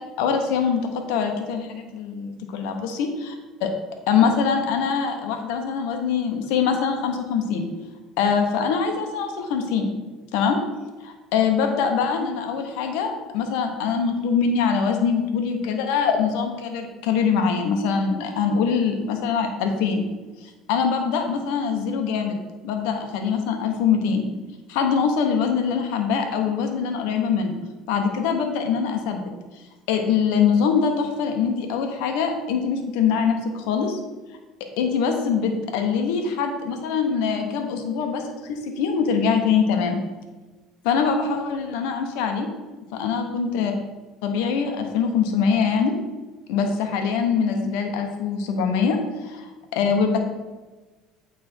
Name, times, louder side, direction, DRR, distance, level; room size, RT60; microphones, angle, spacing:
voice 1, 0.2-3.3 3.6-3.7 4.1-7.7 8.2-9.9 10.3-10.6 11.0-20.0 20.7-22.4 22.6-24.3 24.7-27.6 27.9-29.2 29.9-34.0 34.8-40.0 40.8-42.5 42.9-43.7 44.2-45.9 46.5-49.0 49.2-50.2, left 6 dB, 80° left, 4 dB, 1.0 m, -23 dB
8.7 x 3.4 x 4.4 m, 1.2 s
supercardioid pair, 95°, 0 cm